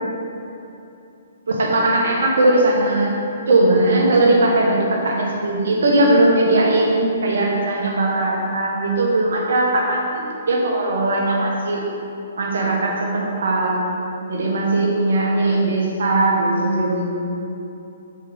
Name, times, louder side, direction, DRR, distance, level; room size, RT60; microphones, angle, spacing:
voice 1, 1.5-3.2 3.5-11.8 12.4-13.8 14.3-17.2, right 2 dB, 65° right, -2 dB, 1.4 m, -19 dB
6.4 x 5.6 x 3.9 m, 2.8 s
figure-of-eight pair, 125°, 0 cm